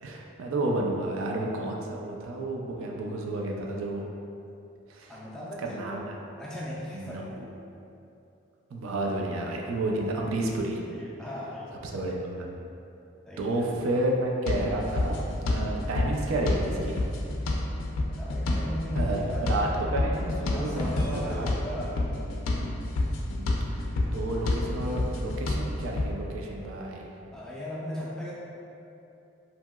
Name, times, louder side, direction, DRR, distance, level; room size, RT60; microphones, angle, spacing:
voice 1, 0.0-4.1 4.9-5.2 5.6-6.2 6.9-7.3 8.7-10.8 11.8-12.6 13.4-17.2 17.4-17.7 18.9-21.5 23.2-27.1, right 1 dB, 90° right, 0 dB, 0.4 m, -31 dB
voice 2, 5.1-5.9 6.4-7.5 9.2-9.3 10.9-11.8 13.3-13.6 18.2-19.6 20.4-22.2 27.3-28.3, equal, 5° left, -8 dB, 0.3 m, -38 dB
sound 1, 14.5-26.1, left 1 dB, 80° left, 0.3 m, -29 dB
2.8 x 2.8 x 2.2 m, 2.8 s
head